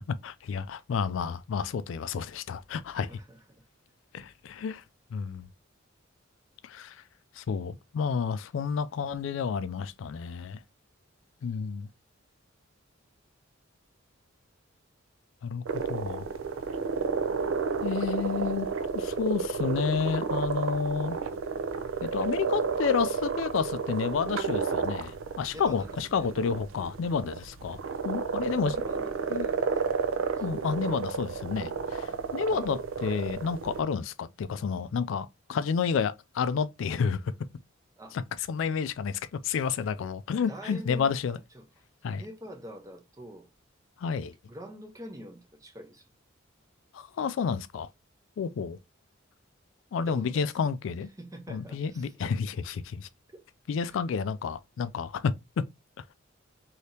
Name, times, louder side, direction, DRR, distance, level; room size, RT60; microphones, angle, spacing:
voice 1, 0.0-3.1 4.1-4.8 5.1-5.5 6.6-7.0 7.4-10.6 11.4-11.9 15.4-16.3 17.8-18.7 18.9-21.2 22.0-28.8 29.3-29.5 30.4-37.3 38.1-38.2 38.5-41.4 42.0-42.2 44.0-44.3 46.9-47.9 48.4-48.8 49.9-51.1 51.5-53.1 53.7-55.3, left 6 dB, 70° left, 0.3 m, -30 dB
voice 2, 2.9-3.6 25.5-26.3 28.5-29.7 30.4-30.5 32.5-32.8 38.0-38.2 40.3-41.7 42.2-43.5 44.5-46.1 50.0-50.5 51.2-52.1 53.3-53.4 53.8-54.0, equal, 15° right, 0.5 m, -45 dB
sound 1, 15.7-33.8, right 5 dB, 85° right, 0.5 m, -32 dB
3.3 x 2.8 x 2.7 m
head